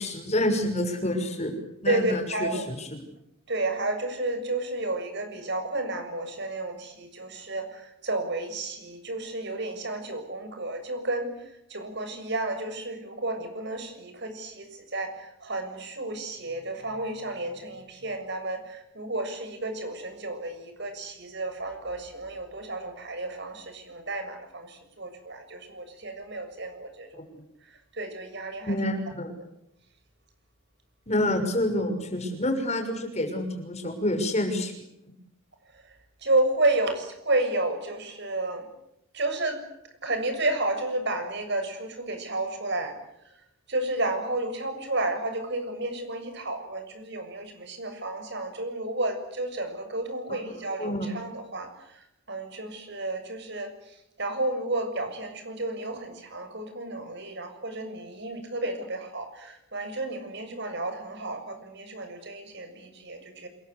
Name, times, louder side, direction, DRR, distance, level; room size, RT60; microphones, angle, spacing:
voice 1, 0.0-1.6 1.8-3.0 27.2-27.4 28.7-29.3 31.1-34.7 50.3-51.1, left 1 dB, 30° left, 5 dB, 6.1 m, -28 dB
voice 2, 1.9-2.7 3.5-27.2 27.7-28.7 35.7-35.9 36.2-38.7 39.1-39.6 40.0-43.0 43.7-63.5, right 2 dB, 55° right, 7 dB, 7.0 m, -31 dB
28.0 x 22.5 x 8.3 m, 0.80 s
head